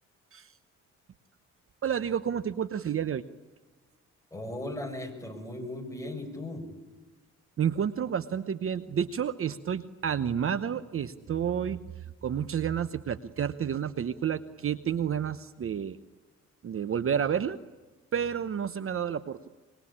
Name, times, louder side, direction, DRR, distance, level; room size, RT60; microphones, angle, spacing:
voice 1, 1.8-3.2 7.6-11.8 12.2-16.0 16.6-17.6 18.1-19.5, right 8 dB, 45° right, 14 dB, 1.0 m, -30 dB
voice 2, 4.3-6.7, left 1 dB, 10° left, 4 dB, 6.4 m, -37 dB
25.0 x 22.5 x 8.8 m, 1.2 s
cardioid pair, 90°, 30 cm